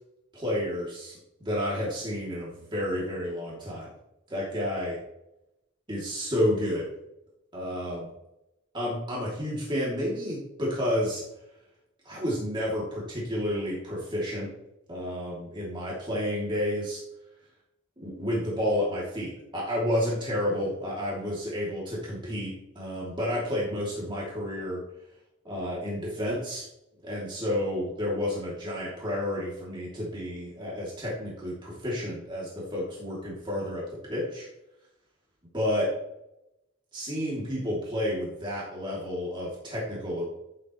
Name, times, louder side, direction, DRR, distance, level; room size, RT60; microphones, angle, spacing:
voice 1, 0.3-1.2 1.4-3.9 4.3-5.0 5.9-6.9 7.5-8.1 8.7-11.2 12.0-14.5 14.9-17.0 18.0-24.8 25.4-26.6 27.0-33.8 34.1-34.5 35.5-35.9 36.9-40.2, left 1 dB, 25° right, -6 dB, 3.0 m, -30 dB
14.0 x 7.8 x 3.2 m, 0.88 s
head